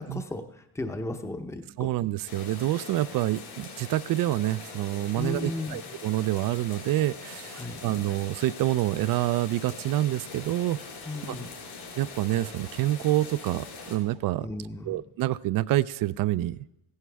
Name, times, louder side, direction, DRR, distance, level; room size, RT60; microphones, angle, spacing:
voice 1, 0.0-1.9 5.2-5.8 7.5-7.8 11.1-11.5 14.4-15.0, left 2 dB, 5° left, 7 dB, 0.7 m, -35 dB
voice 2, 1.8-10.8 11.3-11.4 12.0-14.5 14.8-16.6, right 15 dB, 60° right, 18 dB, 0.5 m, -27 dB
sound 1, 2.3-14.0, left 4 dB, 70° left, 4.6 m, -43 dB
sound 2, 10.3-14.8, right 6 dB, 75° right, 2.3 m, -56 dB
15.5 x 11.0 x 3.4 m, 0.89 s
cardioid pair, 130°, 39 cm